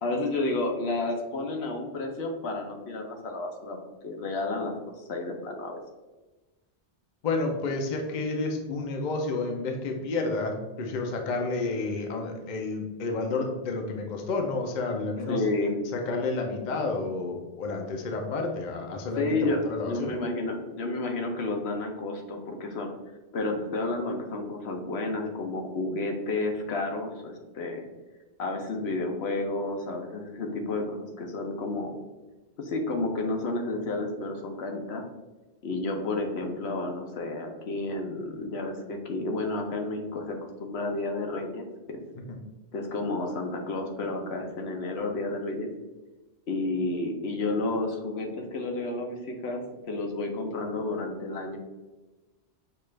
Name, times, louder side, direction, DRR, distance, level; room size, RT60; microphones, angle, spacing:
voice 1, 0.0-3.8 4.0-4.7 5.1-5.8 15.3-15.8 19.2-22.9 23.3-27.9 28.4-32.0 32.6-35.0 35.6-42.0 42.7-45.7 46.5-49.6 49.9-51.6, left 2 dB, 70° left, 2 dB, 1.0 m, -31 dB
voice 2, 7.2-15.4 15.9-20.1, left 3 dB, 50° left, 2 dB, 0.7 m, -30 dB
6.6 x 2.5 x 3.2 m, 1.1 s
omnidirectional pair, 1.1 m